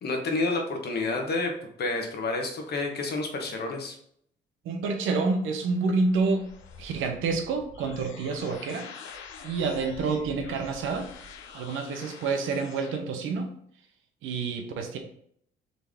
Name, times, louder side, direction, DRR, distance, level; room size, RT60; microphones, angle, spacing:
voice 1, 0.0-1.5 1.8-4.0, left 3 dB, 55° left, 2 dB, 1.1 m, -29 dB
voice 2, 4.6-6.5 6.8-8.9 9.4-11.1 11.5-13.5 14.2-15.0, right 4 dB, 85° right, 5 dB, 0.8 m, -28 dB
sound 1, 5.4-13.0, left 5 dB, 80° left, 0.6 m, -46 dB
3.9 x 3.4 x 3.5 m, 0.67 s
cardioid pair, 90°, 20 cm